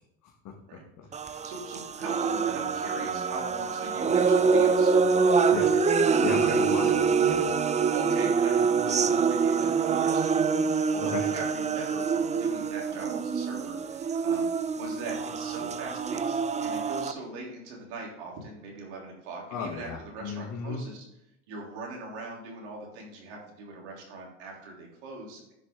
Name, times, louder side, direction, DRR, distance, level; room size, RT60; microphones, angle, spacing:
voice 1, 0.2-0.8 1.2-1.5 5.5-5.7 6.2-7.5 11.0-11.2 19.5-20.8, left 6 dB, 55° left, 1 dB, 1.6 m, -35 dB
sound 1, 1.1-17.1, right 5 dB, 20° right, 0.6 m, -25 dB
voice 2, 1.1-6.9 7.8-14.5 14.7-21.0 21.5-25.5, right 3 dB, 80° right, -1 dB, 3.4 m, -41 dB
10.5 x 6.4 x 3.7 m, 0.85 s
supercardioid pair, 90°, 33 cm